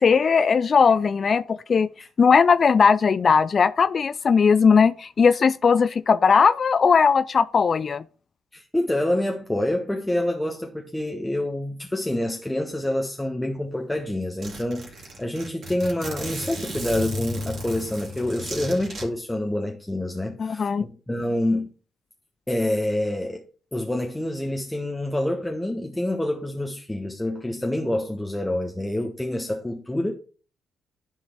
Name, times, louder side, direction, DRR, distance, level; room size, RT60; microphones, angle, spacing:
voice 1, 0.0-1.9 2.2-8.0 20.4-20.8, left 5 dB, 45° left, 0.3 m, -18 dB
voice 2, 8.5-21.7 22.5-23.4 23.7-30.1, left 1 dB, 10° left, 1.3 m, -27 dB
Zipper (clothing), 13.6-13.7 14.0-14.1 14.4-19.0, equal, 50° right, 2.8 m, -34 dB
11.5 x 3.9 x 4.7 m
hypercardioid pair, 40°, 0 cm